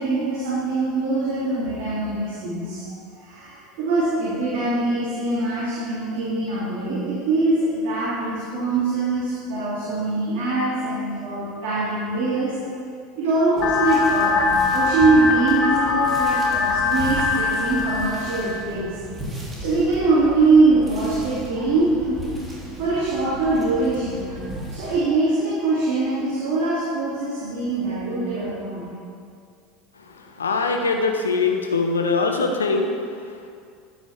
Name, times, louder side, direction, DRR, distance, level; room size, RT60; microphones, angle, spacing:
voice 1, 0.0-2.8 3.2-12.5 13.2-18.9 19.6-22.2 22.8-24.4 24.7-28.8, right 3 dB, 55° right, -9 dB, 3.0 m, -23 dB
sound 1, 13.6-18.6, left 4 dB, 45° left, 1.1 m, -22 dB
sound 2, 13.6-25.0, equal, 15° right, 3.2 m, -36 dB
voice 2, 30.0-33.5, left 4 dB, 80° left, 4 dB, 1.0 m, -23 dB
13.5 x 9.0 x 3.6 m, 2.2 s
figure-of-eight pair, 75°, 0 cm